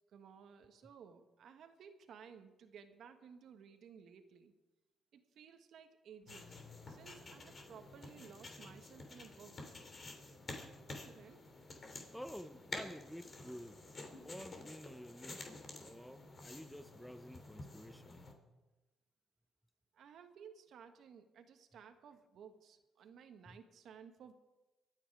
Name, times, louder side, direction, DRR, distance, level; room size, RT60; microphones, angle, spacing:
voice 1, 0.1-4.5 5.1-6.6 6.9-9.6 10.9-11.4 19.9-24.3, right 7 dB, 70° right, 1.5 m, -57 dB
sound 1, 6.3-18.3, left 2 dB, 40° left, 2.9 m, -50 dB
voice 2, 12.1-13.9 14.2-15.5 15.8-18.3 23.5-23.6, equal, ahead, 0.6 m, -51 dB
24.0 x 9.2 x 4.9 m
cardioid pair, 90°, 0 cm